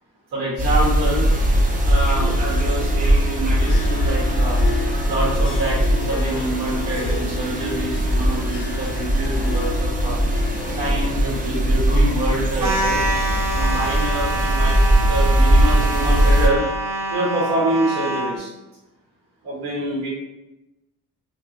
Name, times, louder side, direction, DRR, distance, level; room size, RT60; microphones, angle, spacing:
voice 1, 0.3-1.4 1.8-4.6 5.1-10.1 10.8-13.0 13.5-16.7 17.1-18.5 19.4-20.1, right 1 dB, 80° right, -6 dB, 1.4 m, -26 dB
sound 1, 0.6-16.5, right 1 dB, 20° right, 0.5 m, -20 dB
Harp, 1.2-13.4, left 3 dB, 35° left, 0.5 m, -34 dB
sound 2, 12.6-18.4, right 2 dB, 55° right, 0.9 m, -26 dB
2.8 x 2.6 x 2.4 m, 0.93 s
supercardioid pair, 55°, 38 cm